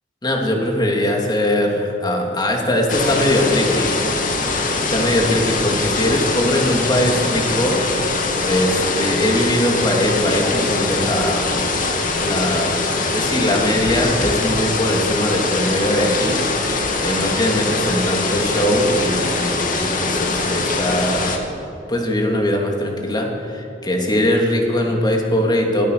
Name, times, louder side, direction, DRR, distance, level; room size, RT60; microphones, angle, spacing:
voice 1, 0.2-3.9 4.9-7.8 8.2-11.7 12.2-21.4 21.9-25.9, left 1 dB, 25° left, 1 dB, 3.2 m, -21 dB
sound 1, 2.9-21.4, left 3 dB, 45° left, 2.4 m, -22 dB
25.0 x 18.0 x 6.9 m, 2.7 s
head